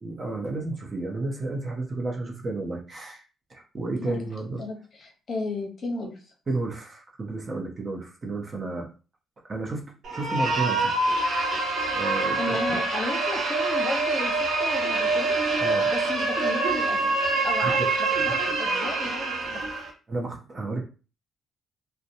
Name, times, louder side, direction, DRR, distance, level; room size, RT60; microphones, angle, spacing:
voice 1, 0.0-3.2 3.5-4.6 6.5-8.9 9.5-11.0 11.9-12.8 15.6-15.9 17.6-17.9 18.7-18.9 20.1-20.8, right 2 dB, 35° right, 1 dB, 0.7 m, -32 dB
voice 2, 4.0-4.3 4.6-6.1 12.4-15.4 15.9-19.6, left 2 dB, 50° left, 2 dB, 0.8 m, -34 dB
sound 1, 10.0-19.9, right 3 dB, 70° right, 0.9 m, -25 dB
2.8 x 2.1 x 2.6 m, 0.34 s
cardioid pair, 90°, 0 cm